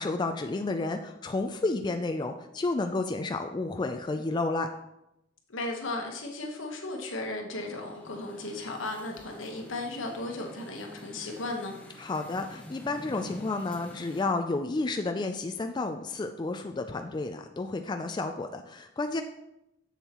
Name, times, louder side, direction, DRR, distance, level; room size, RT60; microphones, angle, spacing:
voice 1, 0.0-4.7 12.0-19.2, left 3 dB, 20° left, 6 dB, 0.3 m, -31 dB
voice 2, 5.5-11.7, left 2 dB, 85° left, 2 dB, 1.2 m, -35 dB
sound 1, 7.5-14.2, left 1 dB, 5° left, 0.9 m, -48 dB
7.2 x 7.0 x 3.0 m, 0.87 s
head